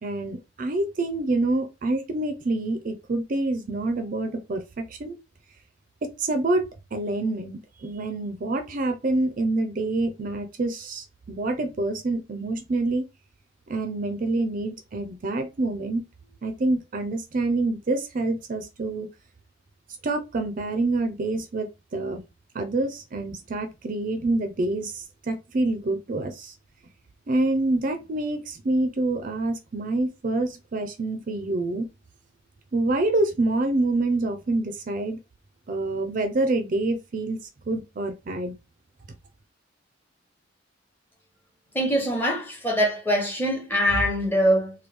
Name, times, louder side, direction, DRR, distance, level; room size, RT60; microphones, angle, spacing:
voice 1, 0.0-5.2 6.0-13.0 13.7-16.0 16.4-19.1 20.0-22.2 22.5-26.5 27.3-31.9 32.7-35.2 35.7-37.4 37.7-38.5, right 2 dB, 45° right, 0.5 m, -27 dB
voice 2, 41.7-44.7, equal, 10° left, 1.0 m, -23 dB
3.1 x 2.3 x 3.3 m
head